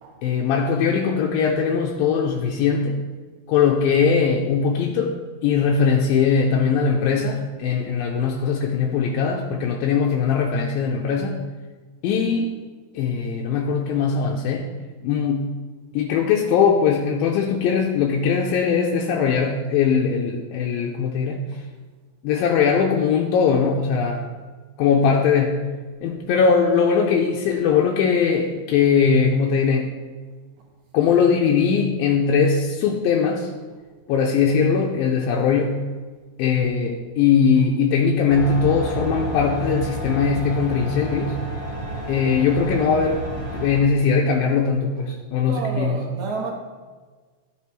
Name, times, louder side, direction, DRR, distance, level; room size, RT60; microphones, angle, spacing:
voice 1, 0.2-3.0 3.5-5.1 5.4-11.4 12.0-12.5 12.9-14.7 15.0-15.5 15.9-21.4 22.2-24.3 24.8-25.6 26.0-29.9 30.9-33.5 34.1-35.8 36.4-41.4 42.1-46.0, left 6 dB, 80° left, 0 dB, 2.3 m, -20 dB
sound 1, 38.3-43.8, right 2 dB, 15° left, 1.4 m, -30 dB
voice 2, 45.4-46.5, right 4 dB, 65° right, -1 dB, 2.0 m, -30 dB
12.5 x 7.4 x 3.1 m, 1.4 s
omnidirectional pair, 4.5 m